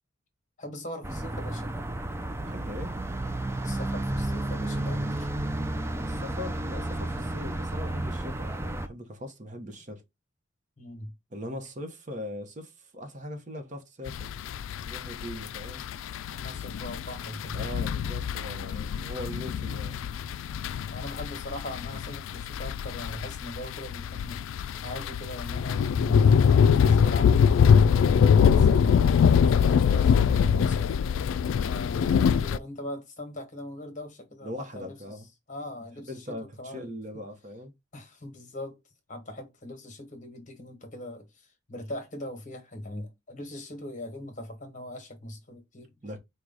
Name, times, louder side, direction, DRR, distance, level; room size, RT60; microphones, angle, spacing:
voice 1, 0.6-1.8 3.6-5.3 10.8-11.1 16.4-17.6 20.9-34.5 34.8-35.2 35.5-36.9 37.9-38.8 39.1-45.9, left 1 dB, 40° left, 1.2 m, -40 dB
sound 1, 1.0-8.9, right 1 dB, 15° right, 0.4 m, -32 dB
voice 2, 2.4-2.9 6.0-10.0 11.3-14.3 14.9-15.8 17.5-20.0 34.4-35.3 36.0-37.7 46.0-46.2, left 1 dB, 40° right, 0.8 m, -40 dB
sound 2, 14.1-32.6, left 7 dB, 85° left, 0.3 m, -23 dB
4.7 x 2.2 x 3.8 m
head